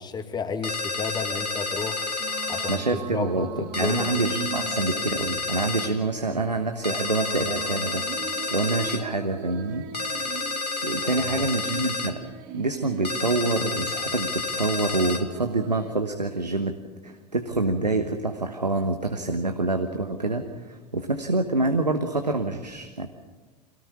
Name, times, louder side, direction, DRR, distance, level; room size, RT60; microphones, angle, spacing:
voice 1, 0.0-2.0 2.5-4.1 11.1-11.5, left 5 dB, 20° left, 7 dB, 2.2 m, -32 dB
sound 1, 0.6-2.8 3.7-5.9 6.8-9.0 9.9-12.1 13.0-15.2, left 3 dB, 90° left, 1.4 m, -30 dB
sound 2, 0.9-15.9, right 8 dB, 50° right, 1.9 m, -41 dB
voice 2, 2.7-8.0 8.5-10.4 10.8-12.2 12.5-16.7 17.0-23.1, right 2 dB, 85° right, 6 dB, 1.3 m, -26 dB
25.0 x 18.0 x 7.1 m, 1.4 s
figure-of-eight pair, 80°, 21 cm